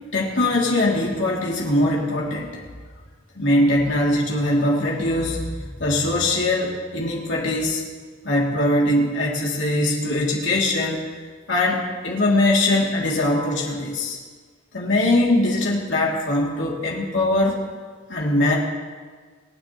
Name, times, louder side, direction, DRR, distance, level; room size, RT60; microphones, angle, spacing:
voice 1, 0.1-2.6 3.4-7.8 8.2-11.0 11.5-14.2 14.7-17.6 18.1-18.6, left 1 dB, 75° left, -4 dB, 2.7 m, -21 dB
27.0 x 10.0 x 3.0 m, 1.5 s
head